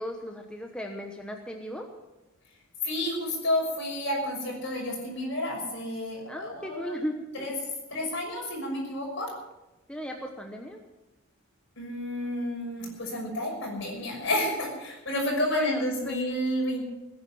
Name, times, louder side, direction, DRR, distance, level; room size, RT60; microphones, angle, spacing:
voice 1, 0.0-1.9 6.3-7.5 9.9-10.8 15.5-16.2, equal, 5° left, 1 dB, 1.0 m, -36 dB
voice 2, 2.8-7.1 7.3-7.5 7.9-9.3 11.8-16.9, left 1 dB, 55° left, -1 dB, 6.1 m, -30 dB
18.0 x 10.5 x 6.2 m, 1.0 s
head